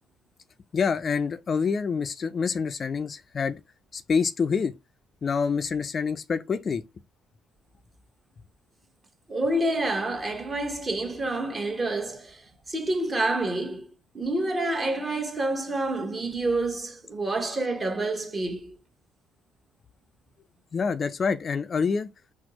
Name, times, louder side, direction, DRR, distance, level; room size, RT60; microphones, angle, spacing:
voice 1, 0.7-3.6 3.9-4.7 5.2-6.8 20.7-22.1, left 5 dB, 45° left, 0.3 m, -26 dB
voice 2, 9.3-13.9 14.1-18.8, right 2 dB, 30° right, 1.0 m, -28 dB
4.2 x 2.0 x 2.9 m
hypercardioid pair, 60°, 0 cm